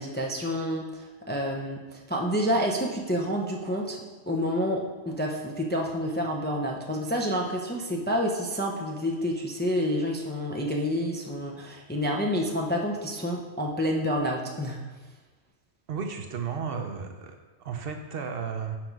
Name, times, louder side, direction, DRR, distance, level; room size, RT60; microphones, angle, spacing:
voice 1, 0.0-14.8, equal, 15° left, 0 dB, 0.5 m, -29 dB
voice 2, 15.9-18.8, right 6 dB, 60° right, 5 dB, 0.8 m, -34 dB
6.0 x 5.2 x 4.6 m, 1.2 s
omnidirectional pair, 1.1 m